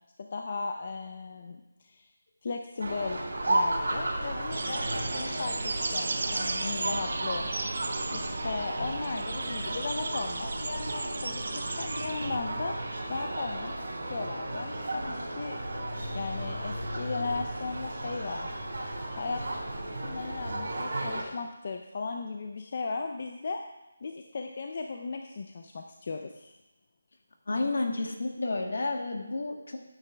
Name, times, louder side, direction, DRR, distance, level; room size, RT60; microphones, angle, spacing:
voice 1, 0.2-2.1 2.4-7.7 8.1-15.6 16.1-18.5 19.1-19.4 20.0-23.6 24.0-26.5, left 4 dB, 30° left, 4 dB, 0.5 m, -36 dB
sound 1, 2.8-21.2, right 1 dB, 65° right, 3.8 m, -34 dB
sound 2, 4.5-12.4, right 3 dB, 45° right, 0.7 m, -35 dB
voice 2, 27.5-29.8, left 2 dB, 60° left, 3 dB, 1.7 m, -31 dB
15.0 x 9.0 x 3.4 m, 0.99 s
figure-of-eight pair, 180°, 0 cm